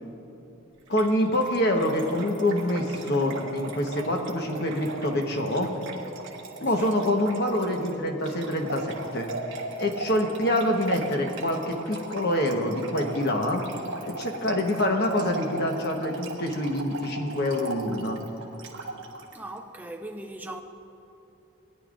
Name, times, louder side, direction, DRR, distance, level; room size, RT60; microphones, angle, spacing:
voice 1, 0.9-5.7 6.6-9.3 9.8-13.6 14.1-18.2, left 1 dB, 50° left, 1.1 m, -26 dB
Trickle dribble / Fill (with liquid), 0.9-19.3, right 3 dB, 65° right, 1.2 m, -38 dB
voice 2, 19.3-20.6, right 1 dB, 10° right, 0.5 m, -39 dB
20.0 x 10.0 x 2.5 m
head